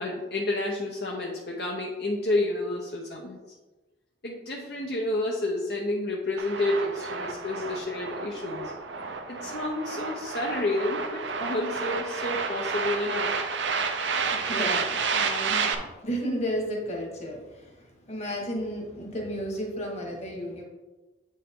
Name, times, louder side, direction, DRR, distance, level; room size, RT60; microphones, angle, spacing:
voice 1, 0.0-3.4 4.2-8.7 9.3-13.4, left 2 dB, 60° left, -1 dB, 0.9 m, -30 dB
sound 1, 6.4-15.7, right 5 dB, 85° right, 0.8 m, -30 dB
voice 2, 14.1-20.6, equal, 35° left, 0 dB, 1.6 m, -33 dB
8.3 x 5.4 x 3.7 m, 1.2 s
head